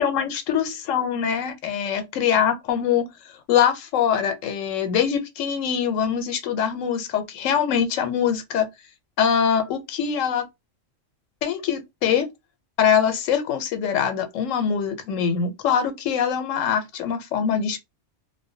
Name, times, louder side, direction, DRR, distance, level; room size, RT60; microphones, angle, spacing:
voice 1, 0.0-3.1 3.5-8.7 9.2-10.5 11.4-12.3 12.8-17.8, left 8 dB, 90° left, 1.0 m, -23 dB
2.2 x 2.1 x 2.6 m
omnidirectional pair, 1.3 m